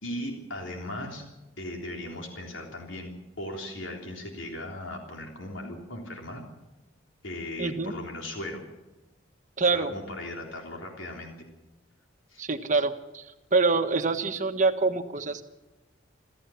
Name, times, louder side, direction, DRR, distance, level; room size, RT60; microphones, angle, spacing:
voice 1, 0.0-1.2 1.6-6.4 7.2-8.6 9.6-11.5 12.3-12.4, left 1 dB, 75° left, 1 dB, 3.5 m, -38 dB
voice 2, 7.6-7.9 9.6-9.9 12.4-13.2 13.5-15.4, right 3 dB, 40° right, 7 dB, 1.4 m, -25 dB
27.0 x 14.5 x 7.2 m, 1.0 s
head